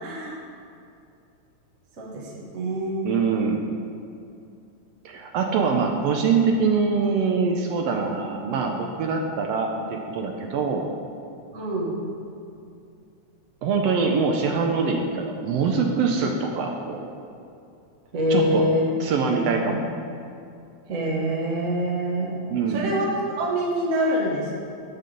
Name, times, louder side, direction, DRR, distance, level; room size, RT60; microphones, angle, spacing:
voice 1, 0.0-0.4 2.0-3.1 11.5-11.9 18.1-18.9 19.2-19.6 20.9-22.4 22.7-24.6, equal, 45° right, -3 dB, 1.1 m, -25 dB
voice 2, 3.0-3.6 5.0-10.8 13.6-17.1 18.3-18.7 19.0-20.0 22.5-22.9, right 5 dB, 80° right, 2 dB, 1.5 m, -24 dB
13.0 x 5.4 x 3.8 m, 2.5 s
omnidirectional pair, 3.4 m